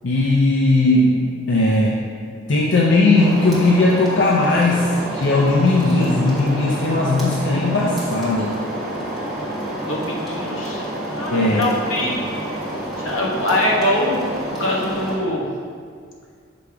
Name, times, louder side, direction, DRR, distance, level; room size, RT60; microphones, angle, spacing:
voice 1, 0.0-1.2 1.5-2.0 2.5-4.9 5.1-8.6 11.3-11.7, left 2 dB, 65° left, -3 dB, 0.6 m, -17 dB
sound 1, 3.1-15.2, right 1 dB, ahead, 1.6 m, -28 dB
voice 2, 9.7-12.2 12.5-12.6 13.0-14.3 14.6-15.5, left 1 dB, 85° left, -3 dB, 1.2 m, -23 dB
6.9 x 3.4 x 4.8 m, 2.1 s
head